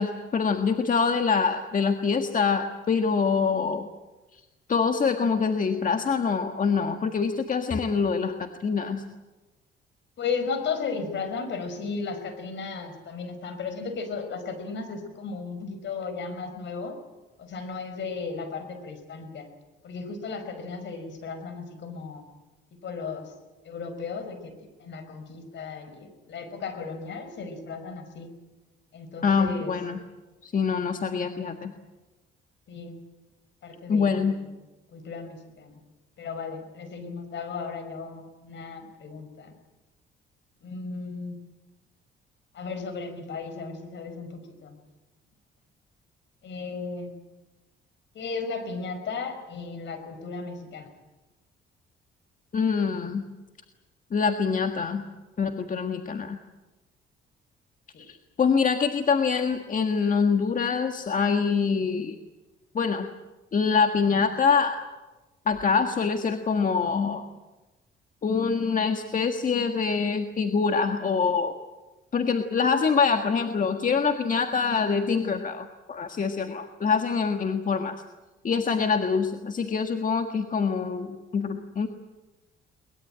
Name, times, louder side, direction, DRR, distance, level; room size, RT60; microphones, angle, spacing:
voice 1, 0.0-3.9 4.3-4.4 4.7-9.0 29.2-30.0 30.4-31.7 33.9-34.4 52.5-53.3 54.1-55.0 55.4-56.4 58.1-62.2 62.7-63.1 63.5-64.8 65.5-67.2 68.2-71.5 72.1-78.0 78.4-81.9, left 5 dB, 40° left, 6 dB, 1.7 m, -25 dB
voice 2, 10.2-17.0 17.4-19.5 19.8-22.2 22.8-23.3 23.6-24.5 24.8-28.3 28.9-29.7 32.7-33.0 33.6-34.5 34.9-35.8 36.2-39.5 40.6-41.4 42.5-44.8 46.4-47.1 48.1-50.9 57.9-58.1, left 4 dB, 65° left, 9 dB, 5.1 m, -35 dB
22.5 x 21.0 x 9.0 m, 1.1 s
cardioid pair, 90°, 20 cm